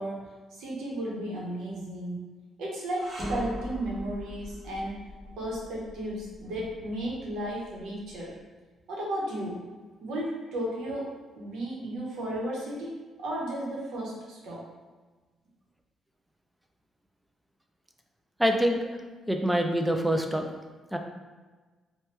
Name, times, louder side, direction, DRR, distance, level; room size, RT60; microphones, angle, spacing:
voice 1, 0.0-2.2 2.6-5.1 5.4-8.3 8.9-9.6 10.0-11.1 11.4-14.6, right 1 dB, 80° right, -4 dB, 0.8 m, -34 dB
sound 1, 3.0-8.2, equal, 30° right, 0.8 m, -40 dB
voice 2, 18.4-18.9 19.3-20.5 20.9-21.0, equal, 5° right, 3 dB, 0.3 m, -25 dB
2.9 x 2.2 x 3.1 m, 1.3 s
cardioid pair, 90°, 0 cm